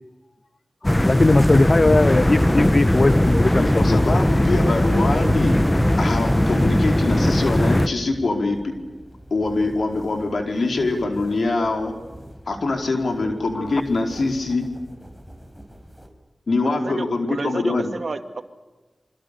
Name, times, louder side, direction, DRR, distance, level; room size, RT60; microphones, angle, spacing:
voice 1, 0.8-4.0 13.5-13.8, left 2 dB, 50° left, 15 dB, 0.8 m, -19 dB
sound 1, 0.8-7.9, left 1 dB, 15° left, 1.4 m, -19 dB
sound 2, 0.9-16.1, equal, ahead, 5.2 m, -40 dB
voice 2, 3.6-5.6 6.0-8.7 9.3-11.9 12.5-14.6 16.5-17.9, left 3 dB, 75° left, 4 dB, 4.7 m, -23 dB
voice 3, 16.6-18.4, right 3 dB, 70° right, 8 dB, 2.3 m, -30 dB
28.5 x 25.0 x 6.9 m, 1.2 s
cardioid pair, 45°, 0 cm